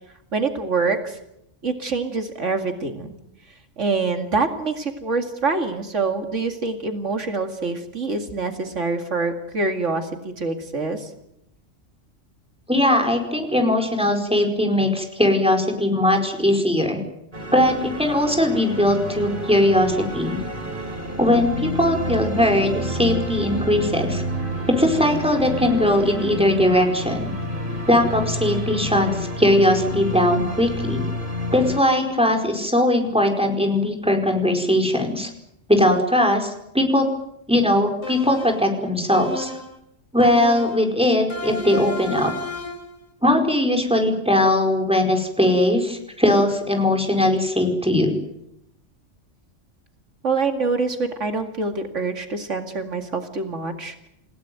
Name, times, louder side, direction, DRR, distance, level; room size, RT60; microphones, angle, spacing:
voice 1, 0.3-1.2 1.6-3.1 3.8-11.1 50.2-54.1, right 3 dB, 80° right, 5 dB, 2.6 m, -25 dB
voice 2, 12.7-17.0 17.5-20.4 21.2-24.2 24.7-27.3 27.9-31.0 31.5-35.3 35.7-37.0 37.5-39.5 40.1-42.3 43.2-48.1, left 1 dB, 5° right, 4 dB, 4.8 m, -20 dB
sound 1, 17.3-31.8, equal, 45° right, 4.4 m, -29 dB
sound 2, 38.0-38.7 39.1-39.8 40.2-40.9 41.3-42.9, left 2 dB, 85° left, 4.4 m, -32 dB
29.0 x 17.0 x 9.3 m, 0.81 s
omnidirectional pair, 1.2 m